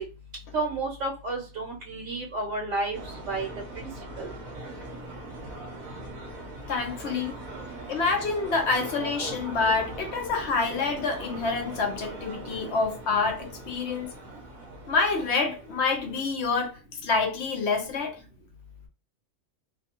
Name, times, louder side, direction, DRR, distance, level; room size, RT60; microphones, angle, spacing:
voice 1, 0.5-3.0 3.3-3.5 4.2-4.3, right 2 dB, 65° right, 1.1 m, -30 dB
sound 1, 2.9-16.2, right 2 dB, 40° right, 0.8 m, -41 dB
voice 2, 6.7-7.4 7.9-14.1 14.9-18.2, left 4 dB, 60° left, 0.8 m, -27 dB
2.6 x 2.3 x 2.8 m
omnidirectional pair, 1.4 m